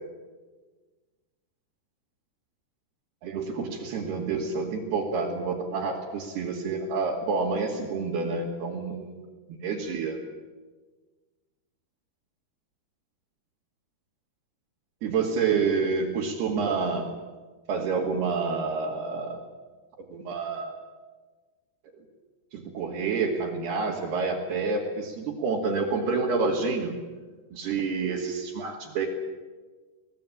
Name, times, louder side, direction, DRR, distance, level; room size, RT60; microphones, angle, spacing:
voice 1, 3.2-9.1 9.6-10.2 15.0-17.1 17.7-19.4 20.1-20.7 22.5-26.9 27.5-29.1, right 4 dB, 70° right, -4 dB, 4.2 m, -28 dB
24.5 x 19.0 x 8.7 m, 1.3 s
omnidirectional pair, 4.8 m